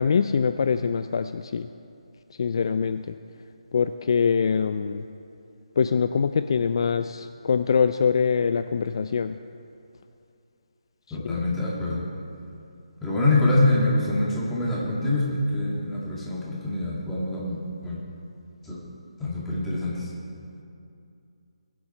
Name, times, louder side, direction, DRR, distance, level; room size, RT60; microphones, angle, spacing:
voice 1, 0.0-1.7 2.4-3.1 3.7-5.1 5.8-9.3 11.2-11.4, left 6 dB, 50° left, 10 dB, 0.4 m, -24 dB
voice 2, 11.1-12.1 13.0-18.0 18.6-18.8 19.2-20.1, left 2 dB, 5° left, -7 dB, 2.3 m, -25 dB
21.0 x 7.8 x 4.4 m, 2.6 s
figure-of-eight pair, 150°, 3 cm